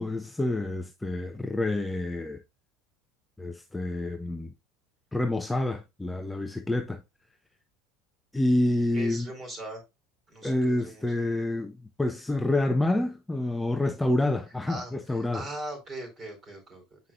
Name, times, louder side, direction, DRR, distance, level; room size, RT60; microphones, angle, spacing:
voice 1, 0.0-2.4 3.4-4.5 5.1-7.0 8.3-9.3 10.4-15.4, left 1 dB, 5° left, 0.6 m, -28 dB
voice 2, 8.9-9.8 10.3-11.1 14.7-17.0, right 1 dB, 25° right, 4.3 m, -40 dB
8.1 x 5.5 x 2.4 m
supercardioid pair, 115°, 0 cm